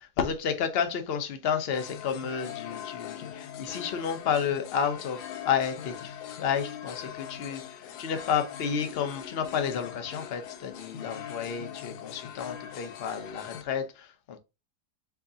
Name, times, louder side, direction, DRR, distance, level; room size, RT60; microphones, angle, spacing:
voice 1, 0.0-14.4, left 7 dB, 55° left, 0.6 m, -31 dB
sound 1, 1.7-13.6, left 10 dB, 75° left, 1.2 m, -41 dB
4.7 x 2.6 x 3.8 m
omnidirectional pair, 1.8 m